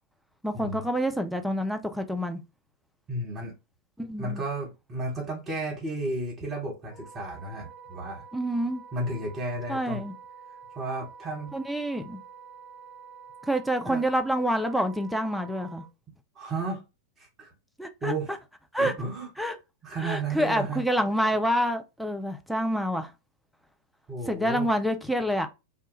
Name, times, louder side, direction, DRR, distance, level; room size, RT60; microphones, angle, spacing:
voice 1, 0.4-2.4 4.0-4.4 8.3-8.8 9.7-10.1 11.5-12.2 13.5-15.8 17.8-18.4 18.7-18.9 19.4-19.6 20.0-23.1 24.3-25.5, equal, ahead, 0.4 m, -27 dB
voice 2, 3.1-3.5 4.2-8.2 8.9-10.0 10.7-11.5 13.8-14.1 16.3-16.8 17.2-17.5 18.0-18.3 18.8-19.5 19.8-20.8 24.1-24.7, right 2 dB, 25° right, 1.1 m, -33 dB
Wind instrument woodwind instrument, 6.9-15.9, right 6 dB, 35° left, 1.1 m, -48 dB
2.2 x 2.2 x 3.0 m
figure-of-eight pair, 90°, 0 cm